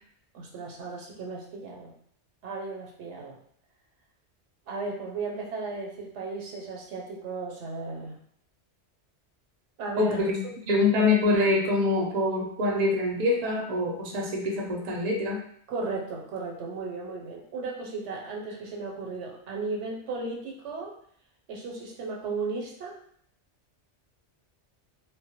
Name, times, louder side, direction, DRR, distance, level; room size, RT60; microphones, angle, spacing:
voice 1, 0.3-1.9 2.4-3.4 4.7-8.2 9.8-10.2 15.7-20.9 21.5-23.0, right 3 dB, 85° right, -1 dB, 0.9 m, -35 dB
voice 2, 10.0-10.4 10.7-15.4, left 2 dB, 50° right, 0 dB, 0.5 m, -25 dB
2.1 x 2.1 x 2.8 m, 0.64 s
omnidirectional pair, 1.2 m